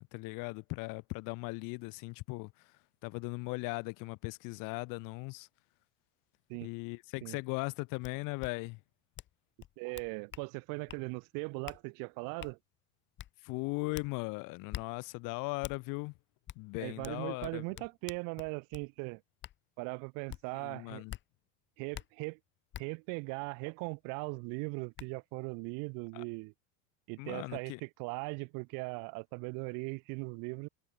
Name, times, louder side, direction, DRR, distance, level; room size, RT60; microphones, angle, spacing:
voice 1, 0.0-2.7 3.0-5.5 6.6-8.8 13.4-16.1 16.6-17.6 20.5-21.2 26.1-26.2 27.2-27.8, left 27 dB, 55° left, 2.1 m, -38 dB
sound 1, 8.0-8.1 8.4-8.5 9.2-9.3 9.6-10.5 10.9-11.0 11.7-11.8 12.4-12.5 13.2-13.3 13.9-14.1 14.7-14.9 15.6-15.8 16.5-16.6 17.0-18.9 19.4-19.6 20.3-20.4 21.1-21.2 21.9-22.1 22.7-22.8 24.3-24.4 25.0-25.1, left 13 dB, 30° left, 0.9 m, -45 dB
voice 2, 9.8-12.6 16.8-19.2 19.8-21.0 21.8-22.4 22.8-26.5 27.1-30.7, right 33 dB, 55° right, 0.8 m, -39 dB
supercardioid pair, 150°, 39 cm